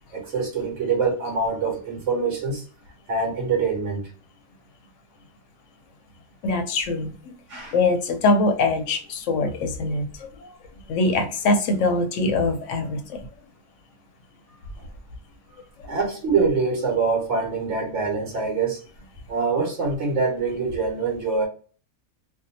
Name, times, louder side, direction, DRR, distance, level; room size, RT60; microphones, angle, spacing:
voice 1, 0.1-2.6 3.1-4.0 7.5-7.7 14.5-14.6 15.8-18.8 19.3-21.5, right 4 dB, 60° right, 1.1 m, -24 dB
voice 2, 6.4-7.3 7.7-10.5 10.9-13.2, left 2 dB, 65° left, 0.8 m, -23 dB
2.6 x 2.2 x 2.7 m
omnidirectional pair, 1.6 m